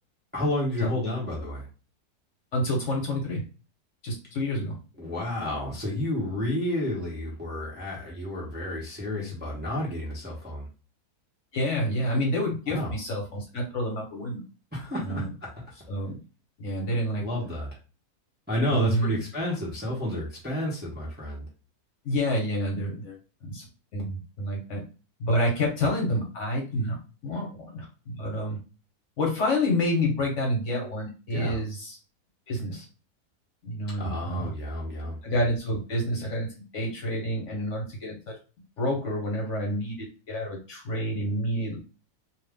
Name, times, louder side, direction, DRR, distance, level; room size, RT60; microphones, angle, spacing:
voice 1, 0.3-1.7 5.0-10.7 12.7-12.9 14.7-15.5 17.2-17.7 18.5-21.4 31.3-31.6 34.0-35.2, left 1 dB, 10° right, -5 dB, 0.7 m, -30 dB
voice 2, 2.5-3.4 4.0-4.8 11.5-14.4 15.0-15.3 15.9-16.2 16.6-17.3 18.7-19.2 22.0-23.7 23.9-24.8 25.2-27.0 27.2-28.6 29.2-32.0 32.5-32.8 33.6-34.5 35.2-36.5 36.7-38.3 38.8-41.8, left 1 dB, 55° left, -1 dB, 1.2 m, -28 dB
2.7 x 2.3 x 3.5 m, 0.34 s
omnidirectional pair, 1.6 m